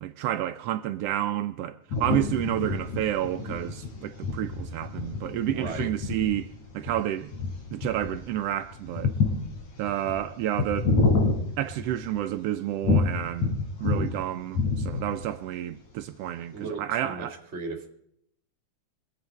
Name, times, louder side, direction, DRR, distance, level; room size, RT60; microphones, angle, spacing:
voice 1, 0.0-6.5 6.7-7.3 7.7-9.1 9.8-10.9 11.6-17.3, right 12 dB, 85° right, 1.3 m, -30 dB
sound 1, 1.9-12.3 12.8-14.2 14.4-15.3, left 3 dB, 75° left, 4.8 m, -28 dB
voice 2, 5.5-5.9 16.5-17.3 17.5-17.9, right 4 dB, 25° right, 2.0 m, -35 dB
23.5 x 8.2 x 4.6 m
omnidirectional pair, 3.4 m